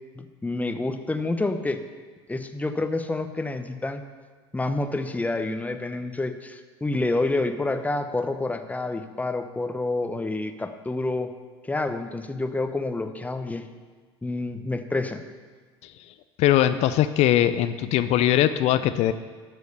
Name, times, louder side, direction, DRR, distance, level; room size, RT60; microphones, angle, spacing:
voice 1, 0.1-1.8 2.3-4.0 4.5-11.3 11.6-13.7 14.2-15.2, left 2 dB, 10° left, 8 dB, 1.0 m, -28 dB
voice 2, 16.4-19.1, left 12 dB, 50° left, 11 dB, 0.5 m, -21 dB
12.0 x 6.4 x 6.8 m, 1.5 s
hypercardioid pair, 70°, 14 cm